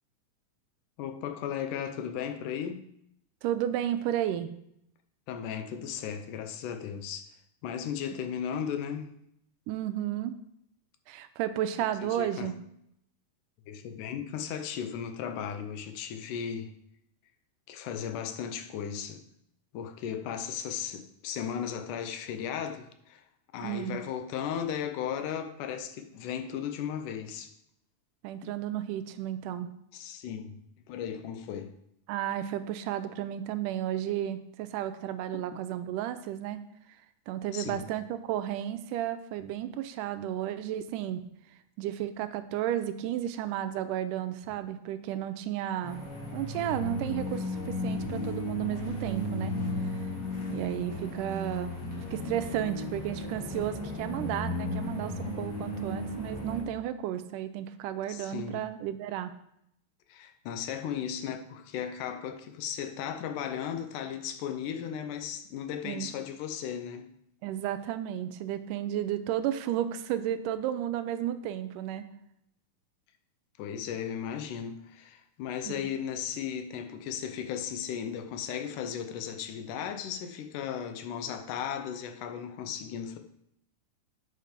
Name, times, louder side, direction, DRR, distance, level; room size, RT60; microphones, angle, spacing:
voice 1, 1.0-2.8 5.3-7.3 7.6-9.1 12.0-12.5 13.7-16.7 17.7-19.2 19.7-23.2 23.5-27.5 28.4-28.5 29.9-30.6 30.9-31.7 35.3-35.4 37.5-37.9 58.1-58.6 60.1-67.1 73.6-83.2, left 8 dB, 75° left, 2.2 m, -36 dB
voice 2, 3.4-4.5 9.7-10.4 11.1-12.5 23.6-24.0 28.2-29.7 32.1-36.6 37.3-41.2 41.8-46.0 46.3-49.6 50.5-51.8 52.1-59.3 65.8-66.1 67.4-72.1 75.7-75.9, right 11 dB, 80° right, 2.0 m, -33 dB
sound 1, 45.8-56.6, left 1 dB, 35° left, 3.3 m, -35 dB
8.8 x 6.5 x 5.1 m
omnidirectional pair, 4.0 m